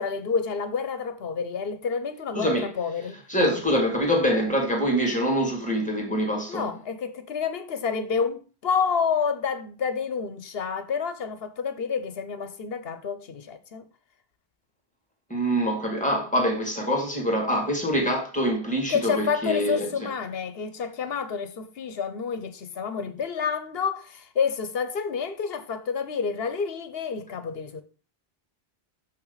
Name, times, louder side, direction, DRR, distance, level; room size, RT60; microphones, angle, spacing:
voice 1, 0.0-3.2 6.5-13.9 18.9-27.8, left 6 dB, 70° left, 1.1 m, -29 dB
voice 2, 2.3-2.7 3.3-6.7 15.3-20.1, equal, 5° left, 2.1 m, -25 dB
6.5 x 5.9 x 4.0 m
omnidirectional pair, 1.1 m